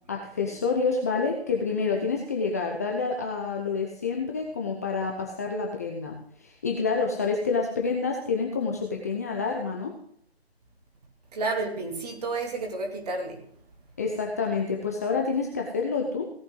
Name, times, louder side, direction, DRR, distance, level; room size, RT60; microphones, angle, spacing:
voice 1, 0.1-9.9 14.0-16.3, left 4 dB, 15° left, 0.7 m, -28 dB
voice 2, 11.3-13.4, right 3 dB, 40° right, 2.7 m, -31 dB
17.0 x 8.9 x 3.8 m
figure-of-eight pair, 155°, 32 cm